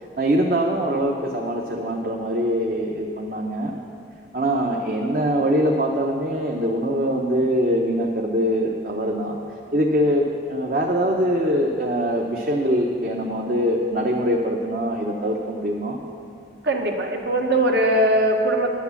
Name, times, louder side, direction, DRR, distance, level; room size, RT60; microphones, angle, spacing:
voice 1, 0.2-3.7 4.3-9.4 9.7-16.0, equal, 50° right, 0 dB, 0.8 m, -23 dB
voice 2, 16.6-18.7, right 1 dB, 70° right, 2 dB, 1.3 m, -20 dB
10.5 x 8.2 x 7.1 m, 2.4 s
head